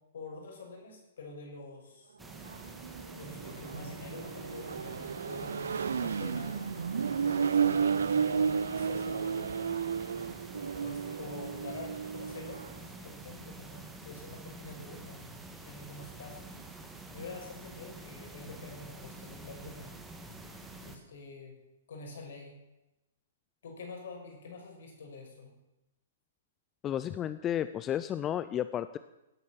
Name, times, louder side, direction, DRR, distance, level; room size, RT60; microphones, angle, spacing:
voice 1, 0.1-2.1 3.1-6.6 7.4-9.5 10.8-16.6 17.1-19.9 20.8-21.5 21.9-22.6 23.6-25.5, left 3 dB, 65° left, 1 dB, 6.4 m, -46 dB
sound 1, 2.2-21.0, right 2 dB, 10° right, 1.9 m, -48 dB
Accelerating revving vroom, 2.3-12.8, right 6 dB, 70° right, 0.6 m, -32 dB
voice 2, 26.8-29.0, left 10 dB, 25° left, 13 dB, 0.6 m, -32 dB
18.0 x 9.7 x 7.5 m, 0.95 s
figure-of-eight pair, 115°, 0 cm